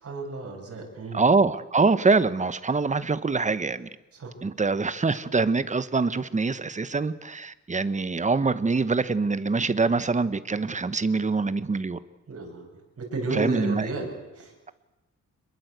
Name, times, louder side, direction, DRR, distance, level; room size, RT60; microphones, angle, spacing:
voice 1, 0.0-1.2 4.1-4.3 12.3-12.7 13.0-14.5, right 2 dB, 50° right, 7.7 m, -33 dB
voice 2, 1.1-3.9 4.4-12.0 13.3-13.9, right 4 dB, 25° right, 1.0 m, -24 dB
26.0 x 22.0 x 8.1 m
wide cardioid pair, 150°, 31 cm